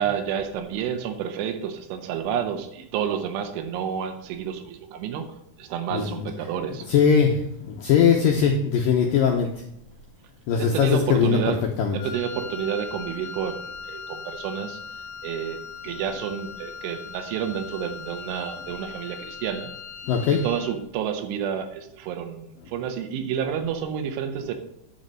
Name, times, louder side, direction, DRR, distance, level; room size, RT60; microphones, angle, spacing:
voice 1, 0.0-6.9 10.6-11.6 11.9-13.6 13.8-14.8 15.2-19.7 20.3-24.5, right 8 dB, 90° right, 6 dB, 3.5 m, -30 dB
voice 2, 5.9-6.3 6.9-9.6 10.5-12.0 20.1-20.4, left 7 dB, 85° left, 1 dB, 2.0 m, -21 dB
Wind instrument woodwind instrument, 11.9-20.8, left 6 dB, 60° left, 1.7 m, -39 dB
10.5 x 5.3 x 7.6 m, 0.79 s
omnidirectional pair, 5.4 m